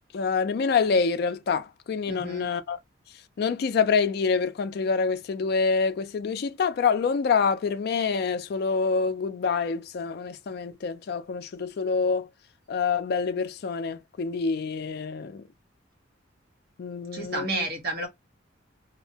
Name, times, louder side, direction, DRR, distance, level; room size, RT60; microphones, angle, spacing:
voice 1, 0.1-2.8 3.4-12.3 12.7-15.4 16.8-17.6, left 5 dB, 50° left, 0.3 m, -26 dB
voice 2, 2.1-2.5 17.1-18.1, right 2 dB, 50° right, 0.9 m, -31 dB
2.6 x 2.1 x 2.7 m
head